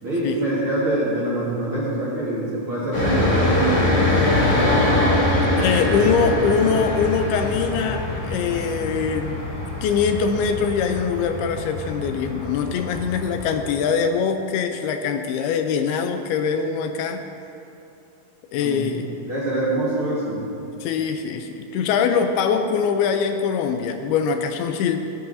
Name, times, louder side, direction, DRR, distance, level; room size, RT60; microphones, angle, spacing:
voice 1, 0.0-5.1 5.5-6.0 6.2-6.5 18.6-18.9 19.3-20.4, right 1 dB, 50° right, -8 dB, 1.8 m, -25 dB
sound 1, 2.9-13.6, left 1 dB, 35° left, 3.9 m, -23 dB
voice 2, 5.6-9.5 9.8-17.2 18.5-19.1 20.8-25.0, left 6 dB, 80° left, 6 dB, 2.4 m, -23 dB
15.0 x 13.5 x 2.7 m, 2.7 s
omnidirectional pair, 4.7 m